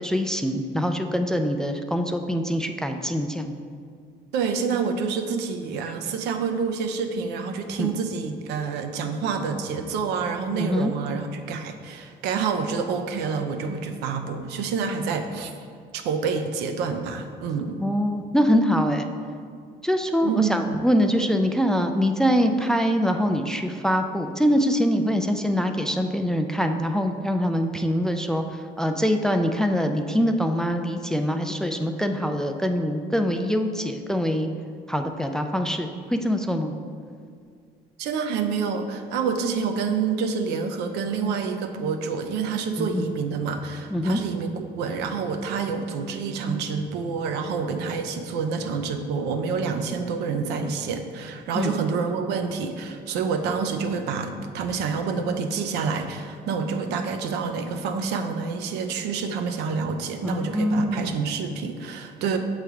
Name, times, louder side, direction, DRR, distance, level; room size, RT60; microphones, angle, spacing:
voice 1, 0.0-3.5 7.8-7.9 10.5-10.9 17.8-19.1 19.8-34.5 34.9-36.7 42.8-43.1 43.9-44.2 51.6-51.7 60.2-61.3, equal, 5° left, 5 dB, 0.3 m, -24 dB
voice 2, 4.3-15.5 15.9-17.8 20.2-20.8 38.0-62.4, right 5 dB, 85° right, 6 dB, 0.5 m, -28 dB
6.7 x 3.2 x 4.8 m, 2.2 s
cardioid pair, 110°, 17 cm